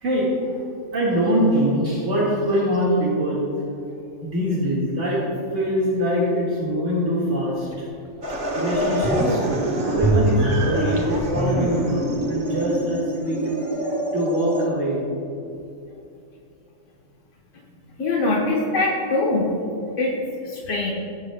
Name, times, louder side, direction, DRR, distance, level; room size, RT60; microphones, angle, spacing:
voice 1, 0.0-0.6 0.9-3.4 4.2-5.2 5.5-7.9 8.6-15.0, equal, 75° right, -7 dB, 2.3 m, -23 dB
sound 1, 7.7-7.8 8.3-8.4 8.7-9.5 10.0-12.2 12.5-12.6, right 1 dB, 15° right, 2.2 m, -24 dB
sound 2, 8.2-14.7, right 1 dB, 45° right, 1.5 m, -27 dB
voice 2, 18.0-19.5 20.0-20.1 20.4-20.9, left 2 dB, 80° left, -4 dB, 1.5 m, -22 dB
21.5 x 7.9 x 2.2 m, 2.7 s
omnidirectional pair, 1.3 m